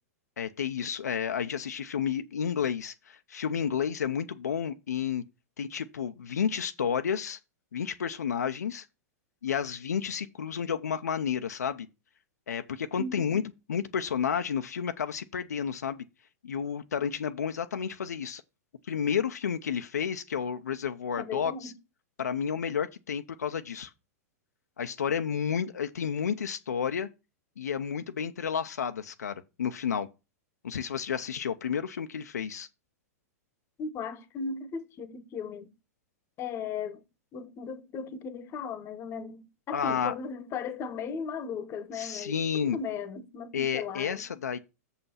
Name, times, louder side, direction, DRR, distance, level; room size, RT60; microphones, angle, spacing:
voice 1, 0.4-5.2 5.6-7.4 7.7-8.9 9.4-11.9 12.5-13.4 13.7-16.0 16.4-18.4 18.9-21.7 22.2-23.9 24.8-27.1 27.6-30.1 30.6-32.7 39.7-40.1 41.9-42.8 43.5-44.6, left 7 dB, 90° left, 0.6 m, -31 dB
voice 2, 21.2-21.7 33.8-35.7 36.4-37.0 37.3-44.2, left 5 dB, 30° left, 1.1 m, -37 dB
6.8 x 5.6 x 5.7 m
hypercardioid pair, 120°, 9 cm